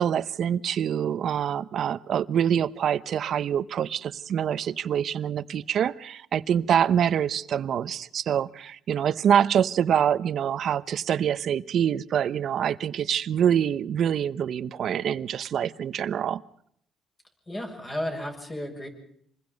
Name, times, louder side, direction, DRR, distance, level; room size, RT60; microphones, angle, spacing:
voice 1, 0.0-16.4, right 9 dB, 55° right, 0.9 m, -25 dB
voice 2, 17.5-18.9, left 1 dB, 20° left, 6.8 m, -33 dB
27.0 x 21.0 x 5.3 m
cardioid pair, 120°, 0 cm